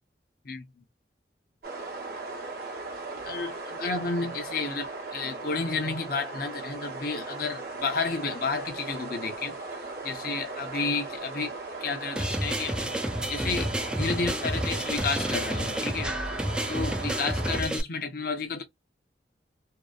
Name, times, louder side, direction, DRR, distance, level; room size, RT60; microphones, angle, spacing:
sound 1, 1.6-17.6, right 3 dB, 55° right, 0.8 m, -38 dB
voice 1, 3.2-9.6 10.0-11.5 11.8-13.0 13.3-16.1 16.7-18.6, left 4 dB, 55° left, 0.6 m, -31 dB
sound 2, 12.2-17.8, right 1 dB, 5° right, 0.3 m, -30 dB
2.6 x 2.0 x 2.3 m
head